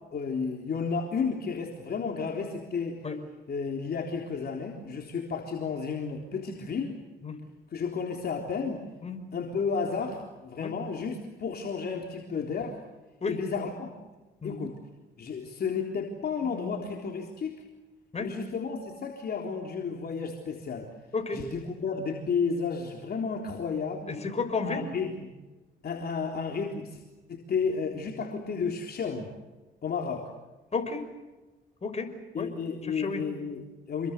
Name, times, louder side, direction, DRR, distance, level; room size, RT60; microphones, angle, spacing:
voice 1, 0.1-3.0 3.5-7.0 7.7-8.8 9.3-12.8 13.3-14.0 14.4-14.7 15.2-17.6 18.2-20.9 21.3-24.1 24.6-25.3 25.8-27.0 27.3-29.3 29.8-30.3 32.3-34.1, left 5 dB, 50° left, 1 dB, 3.8 m, -32 dB
voice 2, 16.4-16.8 18.1-18.3 21.1-21.4 24.1-24.8 30.7-31.1 31.8-32.5 32.9-33.2, left 4 dB, 35° left, 6 dB, 5.7 m, -32 dB
28.0 x 22.5 x 8.2 m, 1.2 s
cardioid pair, 90°, 20 cm